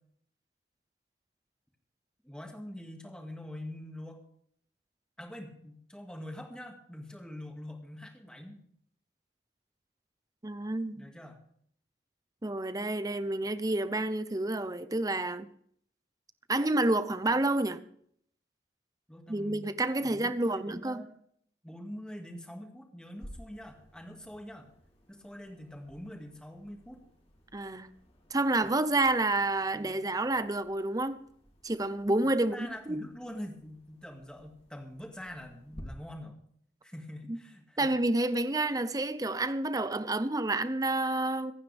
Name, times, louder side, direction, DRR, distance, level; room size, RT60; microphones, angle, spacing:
voice 1, 2.2-4.2 5.2-8.6 11.0-11.4 19.1-19.7 20.0-21.1 21.6-24.7 25.1-27.0 32.2-36.4 36.8-37.9, left 1 dB, 5° left, 2.2 m, -44 dB
voice 2, 10.4-11.0 12.4-15.5 16.5-17.8 19.3-21.0 27.5-27.9 28.3-31.2 31.6-33.0 37.3-37.4 37.8-41.5, right 2 dB, 20° right, 0.7 m, -29 dB
sound 1, 23.2-35.8, equal, 35° left, 2.9 m, -56 dB
26.0 x 9.5 x 3.6 m
head